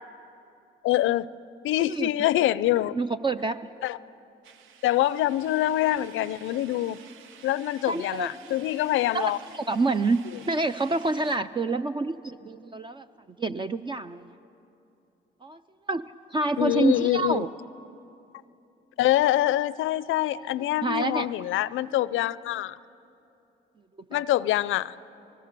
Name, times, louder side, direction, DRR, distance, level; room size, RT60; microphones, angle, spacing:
voice 1, 0.8-1.3 1.6-3.0 3.8-4.0 4.8-7.0 7.4-9.4 16.6-17.5 19.0-22.8 24.1-24.9, left 14 dB, 80° left, 18 dB, 0.5 m, -25 dB
voice 2, 1.8-2.1 2.9-3.6 7.9-8.7 9.1-13.1 13.4-14.3 15.4-15.6 15.9-16.0 16.3-17.5 20.8-21.3 24.1-24.2, right 3 dB, 25° right, 10 dB, 0.5 m, -27 dB
sound 1, 4.4-11.4, right 8 dB, 85° right, 0.8 m, -51 dB
26.5 x 19.5 x 6.8 m, 2.8 s
cardioid pair, 90°, 20 cm